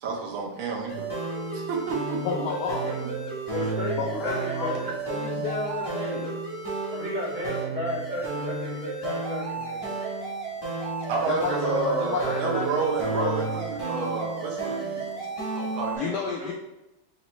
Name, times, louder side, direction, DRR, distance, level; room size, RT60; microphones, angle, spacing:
voice 1, 0.0-1.1 1.5-2.4 4.8-4.9 11.1-15.2 15.5-16.2, right 4 dB, 80° right, -1 dB, 1.6 m, -30 dB
sound 1, 0.9-16.0, right 3 dB, 20° left, 0.7 m, -32 dB
voice 2, 2.2-2.9 4.0-6.3 9.9-10.0 11.3-13.3 13.7-13.8 16.0-16.5, left 5 dB, 75° left, 0 dB, 0.9 m, -31 dB
voice 3, 3.5-4.7 6.9-9.9 15.9-16.5, left 1 dB, 65° right, -8 dB, 2.3 m, -34 dB
4.2 x 3.1 x 3.0 m, 0.93 s
omnidirectional pair, 2.3 m